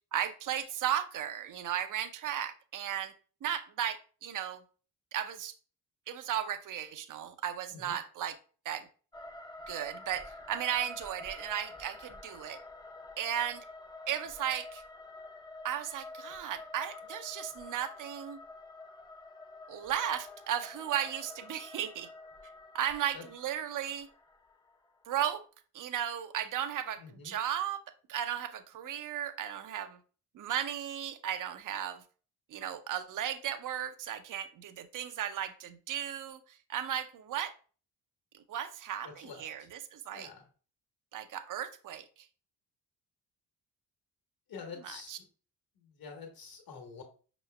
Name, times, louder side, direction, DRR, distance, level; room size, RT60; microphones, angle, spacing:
voice 1, 0.1-3.1 3.4-4.6 5.1-5.5 6.1-8.4 8.6-8.9 9.7-12.6 13.2-13.7 14.1-14.8 15.6-18.4 19.7-22.1 22.7-24.1 25.1-25.4 25.7-27.8 28.1-30.0 30.3-32.0 32.5-37.5 38.3-40.3 41.1-42.0 44.8-45.2, right 10 dB, 45° right, 0.6 m, -35 dB
sound 1, 9.1-25.1, left 2 dB, 10° left, 0.6 m, -48 dB
voice 2, 27.0-27.4 39.0-39.7 40.1-40.5 44.5-45.2 45.7-47.0, left 5 dB, 50° left, 1.3 m, -47 dB
5.3 x 3.0 x 2.2 m
hypercardioid pair, 40°, 44 cm